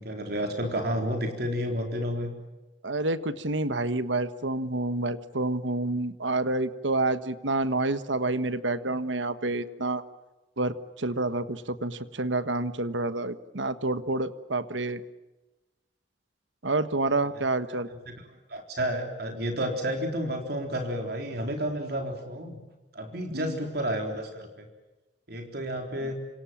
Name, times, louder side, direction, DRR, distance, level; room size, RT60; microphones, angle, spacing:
voice 1, 0.0-2.3 18.1-18.2 18.5-22.6 22.9-24.7 25.3-26.2, equal, 55° right, 3 dB, 3.9 m, -31 dB
voice 2, 2.8-10.0 10.6-15.0 16.6-17.9 23.3-23.6 26.0-26.1, right 2 dB, 80° right, 12 dB, 1.5 m, -28 dB
27.0 x 26.5 x 7.4 m, 1.1 s
head